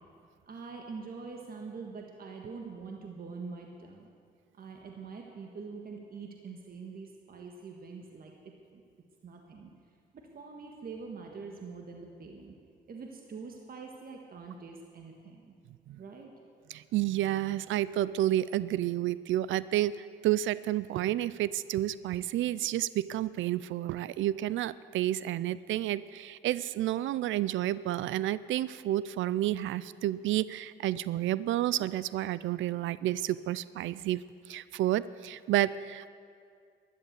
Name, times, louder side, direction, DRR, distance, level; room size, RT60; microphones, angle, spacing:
voice 1, 0.5-4.1 4.6-8.8 9.2-9.7 10.1-12.5 12.9-15.5 16.0-16.3, right 4 dB, 50° right, 2 dB, 1.6 m, -44 dB
voice 2, 16.7-36.1, right 14 dB, 75° right, 17 dB, 0.4 m, -30 dB
12.0 x 11.0 x 8.1 m, 2.2 s
cardioid pair, 90°, 20 cm